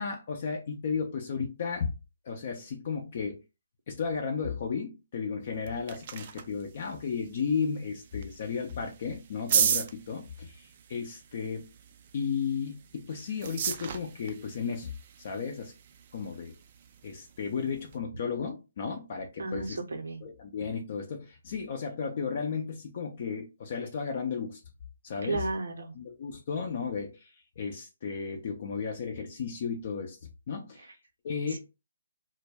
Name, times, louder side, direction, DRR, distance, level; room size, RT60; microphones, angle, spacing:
voice 1, 0.0-1.9 2.2-3.4 3.9-11.7 12.1-15.7 16.1-16.5 17.0-19.8 20.2-24.6 25.0-25.5 26.0-30.2 30.5-31.0 31.2-31.6, left 6 dB, 50° left, 0.5 m, -34 dB
sound 1, 5.4-18.0, right 8 dB, 40° right, 0.3 m, -36 dB
voice 2, 19.4-20.3 25.2-25.9 30.8-30.9, right 3 dB, 75° right, 0.7 m, -34 dB
2.1 x 2.0 x 3.3 m
figure-of-eight pair, 145°, 0 cm